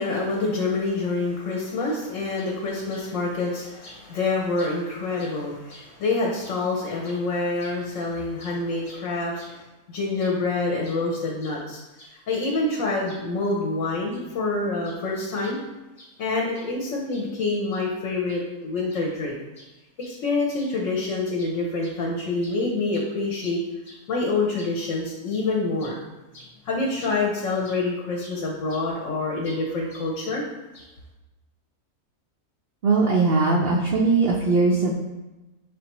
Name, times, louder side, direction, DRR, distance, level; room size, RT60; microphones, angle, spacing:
voice 1, 0.0-9.6 9.9-15.6 16.0-19.7 20.0-23.6 23.9-26.0 26.3-30.4 30.7-30.8, left 3 dB, 65° left, -2 dB, 1.0 m, -27 dB
voice 2, 32.8-34.9, right 3 dB, 65° right, -2 dB, 0.6 m, -20 dB
5.2 x 3.3 x 2.9 m, 1.1 s
omnidirectional pair, 1.5 m